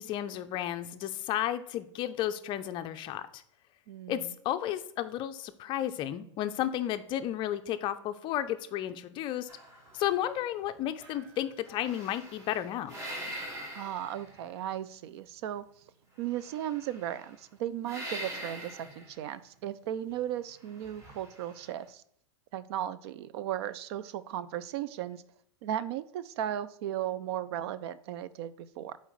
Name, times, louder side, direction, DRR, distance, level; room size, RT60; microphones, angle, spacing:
voice 1, 0.0-3.4 4.1-9.5 9.9-12.9, left 12 dB, 30° left, 9 dB, 0.5 m, -33 dB
voice 2, 3.9-4.3 13.7-15.6 16.2-22.0 22.5-25.2 25.6-29.0, right 11 dB, 55° right, 15 dB, 0.4 m, -36 dB
sound 1, 9.5-10.7 11.0-14.7 16.3-17.4 17.8-19.2 20.6-21.8, equal, 20° right, 1.4 m, -44 dB
7.7 x 4.2 x 3.2 m, 0.70 s
supercardioid pair, 140°, 16 cm